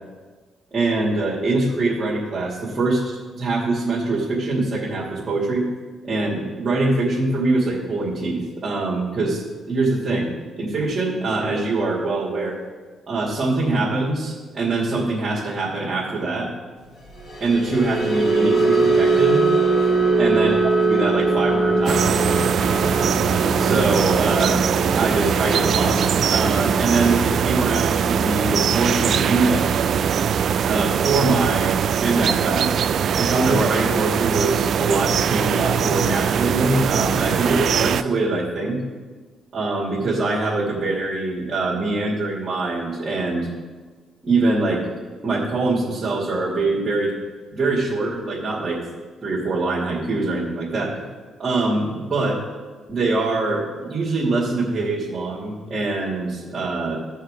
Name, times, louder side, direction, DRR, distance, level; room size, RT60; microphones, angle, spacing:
voice 1, 0.7-5.6 6.0-10.3 10.6-12.6 13.1-16.5 17.4-19.4 19.8-19.9 20.2-20.5 20.9-22.2 23.6-24.6 25.0-29.6 30.7-32.8 33.2-38.8 39.5-43.5 44.2-44.9 45.2-47.1 47.5-48.8 49.2-51.0 51.4-52.4 52.9-57.0, right 3 dB, 35° right, -7 dB, 2.5 m, -23 dB
sound 1, 17.2-33.5 33.9-34.2 34.5-34.8, right 3 dB, 60° left, 3.1 m, -23 dB
sound 2, 21.9-38.0, right 8 dB, 60° right, 0.3 m, -21 dB
16.0 x 5.6 x 3.7 m, 1.4 s
cardioid pair, 90°, 0 cm